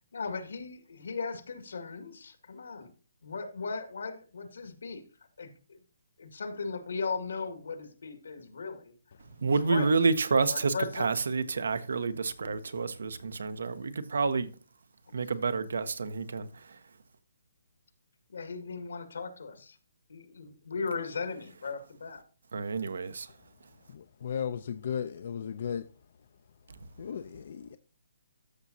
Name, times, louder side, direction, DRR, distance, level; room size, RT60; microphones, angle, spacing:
voice 1, 0.1-2.9 3.2-5.0 5.4-5.8 6.2-8.9 9.5-9.9 10.5-11.1 18.3-19.8 20.1-22.2, left 4 dB, 80° left, 1.9 m, -37 dB
voice 2, 9.4-14.5 15.1-16.8 22.5-23.3, right 4 dB, 75° right, 0.9 m, -29 dB
voice 3, 23.9-25.9 27.0-27.8, left 8 dB, 50° left, 0.5 m, -35 dB
13.0 x 6.1 x 2.8 m
hypercardioid pair, 165°, 0 cm